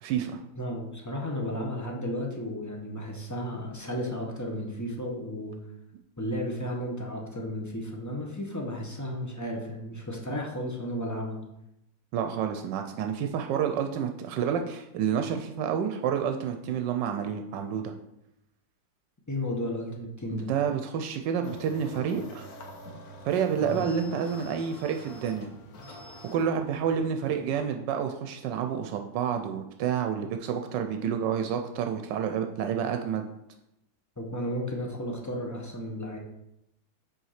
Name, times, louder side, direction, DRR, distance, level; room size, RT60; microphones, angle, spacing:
voice 1, 0.0-0.4 12.1-17.9 20.3-22.5 23.2-25.5 26.3-33.3, right 8 dB, 85° right, 5 dB, 1.2 m, -29 dB
voice 2, 0.6-5.6 6.2-11.4 19.3-20.5 23.6-23.8 34.2-36.2, equal, 15° left, 0 dB, 0.7 m, -33 dB
sound 1, 21.4-27.6, equal, 60° left, 1.5 m, -46 dB
5.7 x 4.5 x 5.7 m, 0.84 s
omnidirectional pair, 1.9 m